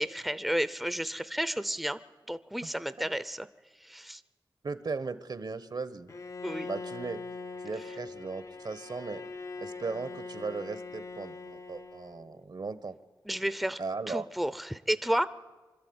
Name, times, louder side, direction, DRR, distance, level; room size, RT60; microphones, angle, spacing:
voice 1, 0.0-2.0 2.3-3.5 3.8-4.2 6.4-6.7 13.3-13.8 14.1-15.3, equal, ahead, 14 dB, 0.6 m, -31 dB
voice 2, 4.6-6.1 6.7-7.2 7.6-9.2 9.6-13.0 13.8-14.3, right 4 dB, 65° right, 14 dB, 1.1 m, -37 dB
Bowed string instrument, 6.1-12.4, left 3 dB, 40° left, 0.6 m, -42 dB
25.0 x 13.0 x 9.5 m, 1.3 s
wide cardioid pair, 75°, 8 cm